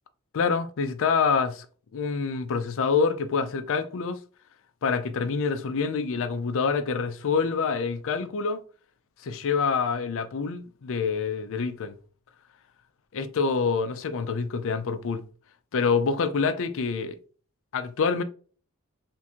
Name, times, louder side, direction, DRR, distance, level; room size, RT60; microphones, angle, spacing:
voice 1, 0.3-1.7 1.9-4.2 4.8-8.6 9.2-11.9 13.1-15.3 15.7-17.2 17.7-18.2, left 5 dB, 60° left, 0.4 m, -26 dB
3.6 x 2.6 x 2.8 m
head